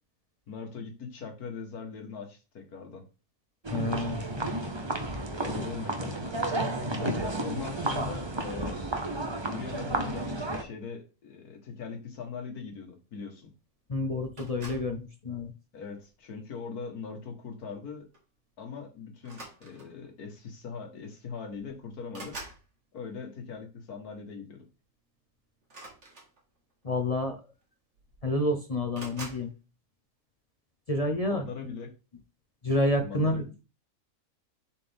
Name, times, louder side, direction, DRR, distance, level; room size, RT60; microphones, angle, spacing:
voice 1, 0.5-3.0 5.4-6.6 6.9-8.8 9.4-13.5 15.7-18.1 18.6-22.4 22.9-24.7 31.2-31.9 33.0-33.5, left 5 dB, 70° left, 3 dB, 1.9 m, -41 dB
sound 1, 3.6-10.6, right 2 dB, 25° right, 0.7 m, -32 dB
voice 2, 3.7-4.3 7.0-7.2 13.9-15.5 26.8-27.4 28.2-29.5 30.9-31.4 32.6-33.4, left 1 dB, 40° left, 5 dB, 0.5 m, -29 dB
sound 2, 14.4-15.0 15.9-16.2 17.7-17.8 18.1-18.3 19.2-20.1 21.1-21.2 21.5-22.7 25.6-26.7 27.6-27.7 27.9-28.5 28.9-29.5, right 2 dB, 45° right, 2.3 m, -45 dB
7.3 x 4.3 x 3.5 m, 0.31 s
omnidirectional pair, 1.6 m